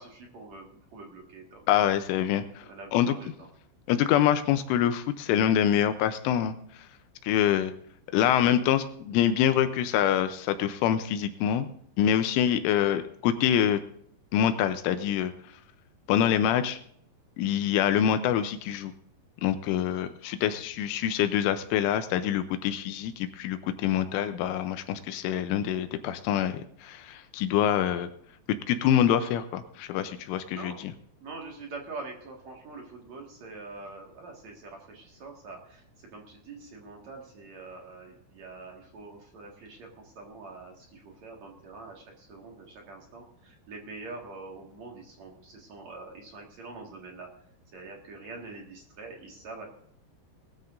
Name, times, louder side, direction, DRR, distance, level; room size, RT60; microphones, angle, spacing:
voice 1, 0.0-1.9 2.6-3.5 12.6-12.8 30.5-30.9 31.2-47.3 47.7-49.7, right 3 dB, 55° right, 0 dB, 2.1 m, -45 dB
voice 2, 1.7-2.6 2.9-3.2 3.9-6.5 7.2-7.7 8.1-11.7 12.0-13.8 14.3-15.3 16.1-16.8 17.4-18.9 19.4-28.1 28.5-30.9, left 10 dB, 85° left, 9 dB, 3.1 m, -25 dB
20.0 x 13.0 x 2.6 m, 0.68 s
omnidirectional pair, 5.8 m